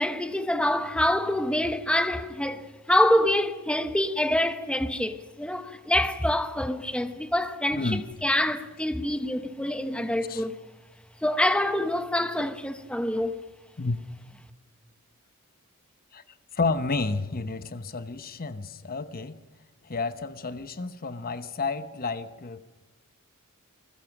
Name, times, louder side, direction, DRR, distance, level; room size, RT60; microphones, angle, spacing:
voice 1, 0.0-10.6 11.2-13.4, left 1 dB, 5° left, 1.0 m, -26 dB
voice 2, 16.5-19.4 19.8-22.6, left 3 dB, 45° left, 1.0 m, -30 dB
28.5 x 20.5 x 6.1 m
head